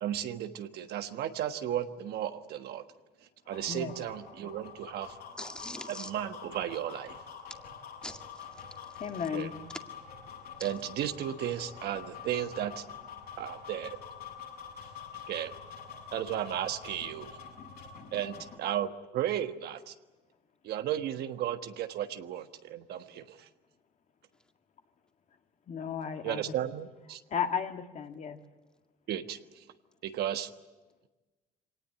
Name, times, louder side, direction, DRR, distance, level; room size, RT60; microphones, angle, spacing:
voice 1, 0.0-2.8 3.5-5.2 5.9-7.2 9.3-9.5 10.6-12.8 13.4-14.0 15.3-15.6 16.1-17.4 18.1-19.9 20.6-23.5 26.2-27.2 29.1-29.4 30.0-30.5, right 11 dB, 70° right, 1.4 m, -34 dB
sound 1, 3.4-18.6, left 7 dB, 65° left, 7.4 m, -46 dB
voice 2, 5.4-6.1 8.0-9.0 10.6-10.7, left 1 dB, 5° left, 2.1 m, -44 dB
voice 3, 9.0-9.6 25.7-26.4 27.3-28.4, left 7 dB, 45° left, 2.0 m, -34 dB
24.5 x 18.5 x 9.9 m
cardioid pair, 110°, 17 cm